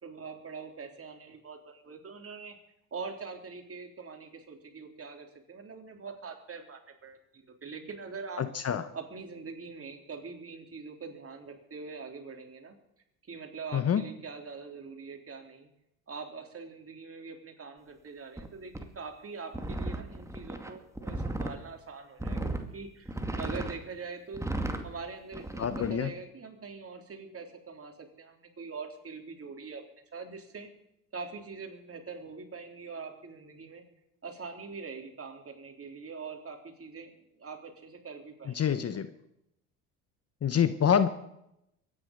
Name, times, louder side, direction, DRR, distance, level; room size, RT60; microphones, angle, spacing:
voice 1, 0.0-2.6 2.9-8.5 8.9-12.8 13.3-15.7 16.1-24.5 24.8-29.8 30.1-30.7 31.1-33.8 34.2-37.1 37.4-38.8, right 4 dB, 35° right, 3 dB, 3.7 m, -43 dB
voice 2, 8.4-8.8 13.7-14.0 25.6-26.1 38.5-39.1 40.4-41.1, left 8 dB, 35° left, 12 dB, 1.1 m, -26 dB
sound 1, 18.4-18.5 18.7-18.8 19.5-21.6 22.2-22.6 23.0-23.7 24.3-24.8 25.3-25.9, right 1 dB, 5° right, 2.1 m, -34 dB
23.0 x 10.0 x 5.3 m, 0.81 s
hypercardioid pair, 65°, 42 cm